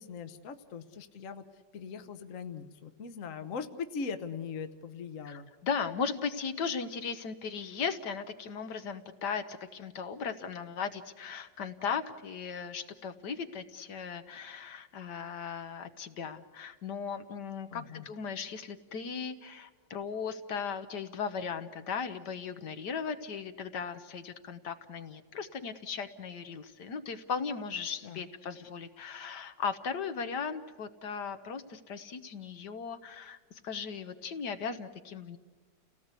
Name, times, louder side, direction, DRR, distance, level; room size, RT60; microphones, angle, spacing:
voice 1, 0.0-5.5 17.7-18.1 28.0-28.2, left 5 dB, 50° left, 9 dB, 1.3 m, -40 dB
voice 2, 5.2-35.4, left 6 dB, 70° left, 9 dB, 1.7 m, -37 dB
30.0 x 17.5 x 8.2 m, 1.4 s
omnidirectional pair, 1.9 m